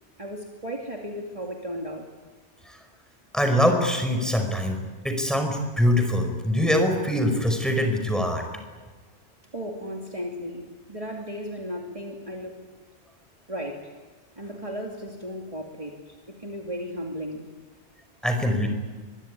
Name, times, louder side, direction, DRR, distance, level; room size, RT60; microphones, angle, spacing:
voice 1, 0.2-2.1 9.5-12.6 13.5-13.9 14.4-17.5, equal, 30° right, 0 dB, 2.6 m, -35 dB
voice 2, 3.3-4.8 5.0-8.4 18.2-18.7, equal, ahead, 5 dB, 5.3 m, -23 dB
24.5 x 22.5 x 9.9 m, 1.4 s
omnidirectional pair, 1.2 m